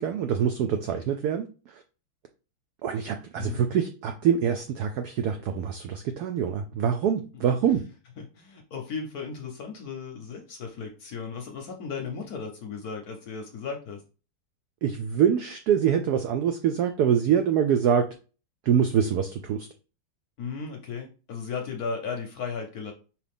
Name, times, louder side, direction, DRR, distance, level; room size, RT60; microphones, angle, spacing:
voice 1, 0.0-1.5 2.8-7.8 14.8-18.1 18.7-19.7, right 8 dB, 80° right, 0.8 m, -25 dB
voice 2, 8.2-14.0 20.4-22.9, left 5 dB, 65° left, 1.0 m, -35 dB
4.8 x 3.1 x 3.5 m
omnidirectional pair, 2.2 m